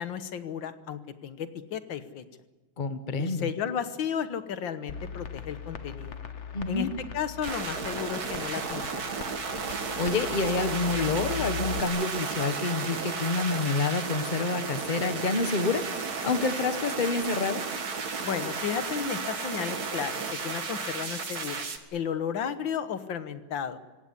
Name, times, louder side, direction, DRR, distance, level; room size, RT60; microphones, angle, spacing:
voice 1, 0.0-2.2 3.2-6.2 6.7-6.9 7.1-9.1 18.2-21.7 21.9-23.8, left 8 dB, 90° left, 11 dB, 1.9 m, -33 dB
voice 2, 2.8-3.5 6.5-6.9 9.9-17.6, left 3 dB, 30° left, 9 dB, 1.3 m, -28 dB
sound 1, 4.9-11.8, left 6 dB, 45° left, 1.3 m, -40 dB
sound 2, 7.4-21.8, right 5 dB, 55° right, 2.2 m, -33 dB
25.5 x 17.0 x 9.9 m, 1.2 s
omnidirectional pair, 2.0 m